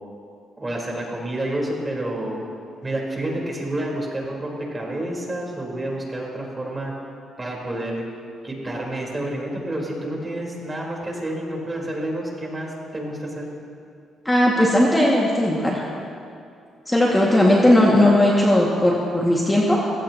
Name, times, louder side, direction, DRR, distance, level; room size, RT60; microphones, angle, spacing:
voice 1, 0.6-2.4 2.8-6.9 7.4-8.1 8.4-13.5, right 1 dB, 20° right, -2 dB, 4.3 m, -29 dB
voice 2, 14.3-15.8 16.9-19.8, left 1 dB, 10° left, -4 dB, 2.1 m, -17 dB
23.5 x 16.5 x 3.0 m, 2.4 s
cardioid pair, 90°, 0 cm